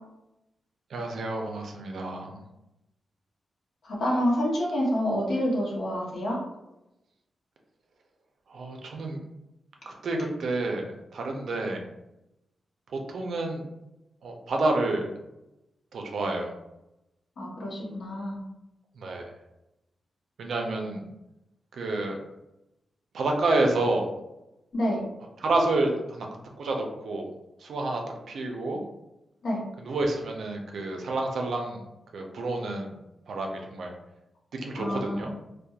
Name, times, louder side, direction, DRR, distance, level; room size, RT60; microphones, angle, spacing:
voice 1, 0.9-2.4 8.5-9.2 9.9-11.8 13.1-13.6 14.2-15.1 15.9-16.5 19.0-19.3 20.4-21.0 21.7-22.2 23.1-24.2 25.4-26.3 26.6-27.2 27.6-28.0 28.3-28.8 29.8-31.8 32.1-32.9 33.3-33.9 34.5-35.3, right 2 dB, 70° right, 2 dB, 0.4 m, -29 dB
voice 2, 3.8-6.4 17.4-18.4 24.7-25.0 29.4-29.6 34.7-35.2, equal, 70° left, -4 dB, 0.8 m, -27 dB
2.8 x 2.1 x 2.3 m, 0.92 s
wide cardioid pair, 165°, 0 cm